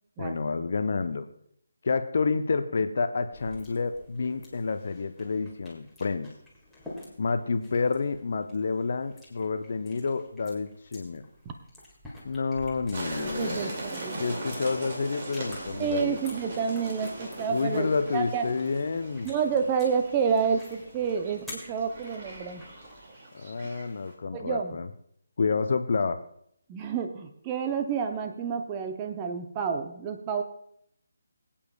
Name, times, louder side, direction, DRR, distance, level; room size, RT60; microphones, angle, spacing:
voice 1, 0.2-1.3 1.8-6.3 7.2-11.2 12.2-13.6 14.2-16.2 17.5-19.3 23.3-24.9 25.4-26.2, left 4 dB, 45° left, 9 dB, 0.7 m, -29 dB
sound 1, 3.3-23.1, left 2 dB, ahead, 2.1 m, -50 dB
sound 2, 12.9-24.1, right 2 dB, 35° right, 2.4 m, -40 dB
voice 2, 13.2-14.2 15.8-18.4 19.2-22.7 23.6-23.7 24.3-24.8 26.7-30.4, right 6 dB, 20° right, 5 dB, 0.8 m, -29 dB
23.0 x 8.7 x 2.3 m, 0.69 s
figure-of-eight pair, 150°, 0 cm